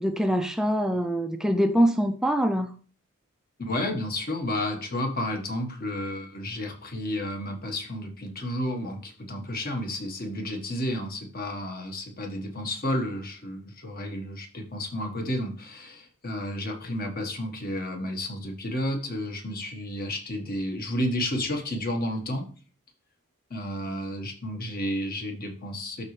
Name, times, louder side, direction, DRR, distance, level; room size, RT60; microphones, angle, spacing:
voice 1, 0.0-2.7, equal, 5° right, 7 dB, 0.4 m, -24 dB
voice 2, 3.6-22.4 23.5-26.0, left 1 dB, 45° left, 3 dB, 1.5 m, -31 dB
12.0 x 4.1 x 3.2 m, 0.39 s
head